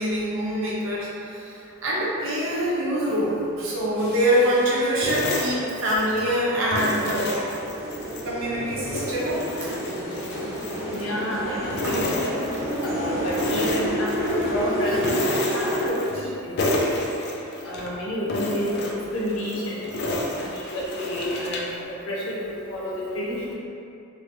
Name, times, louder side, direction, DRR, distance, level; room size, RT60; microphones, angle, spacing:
voice 1, 0.0-7.5 8.2-9.8 10.3-10.4 10.7-10.8 11.7-12.0 12.9-13.0 13.8-13.9 17.7-17.8, equal, 60° right, -6 dB, 0.7 m, -25 dB
sound 1, 4.0-15.9, equal, 30° right, 1.0 m, -30 dB
sound 2, 5.0-6.3 6.7-8.3 8.7-11.4 11.7-13.0 13.3-14.5 15.0-16.3 16.6-17.9 18.3-21.8, left 1 dB, 50° left, 0.4 m, -30 dB
voice 2, 10.9-12.4 12.8-15.1 15.5-16.9 17.6-23.5, equal, 75° left, -6 dB, 0.8 m, -30 dB
3.0 x 2.8 x 2.6 m, 2.6 s
head